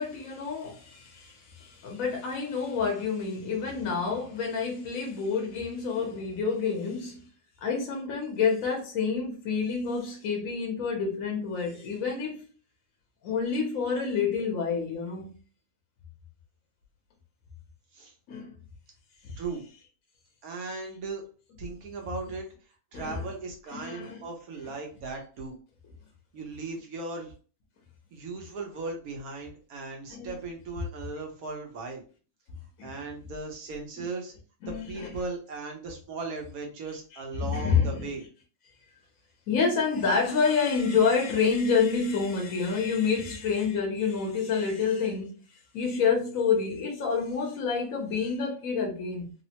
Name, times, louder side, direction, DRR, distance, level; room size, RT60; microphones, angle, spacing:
voice 1, 0.0-7.2 7.6-12.5 13.2-15.3 18.3-18.5 19.2-19.4 22.9-23.2 23.7-24.2 30.1-30.3 32.8-32.9 34.6-35.1 37.4-38.1 39.5-45.3 45.7-49.3, left 5 dB, 70° left, 1.2 m, -28 dB
voice 2, 20.4-21.2 21.6-22.5 22.9-25.6 26.3-27.3 28.1-32.0 32.8-34.3 34.7-38.2, right 3 dB, 90° right, 1.3 m, -37 dB
3.4 x 2.1 x 2.8 m
omnidirectional pair, 1.5 m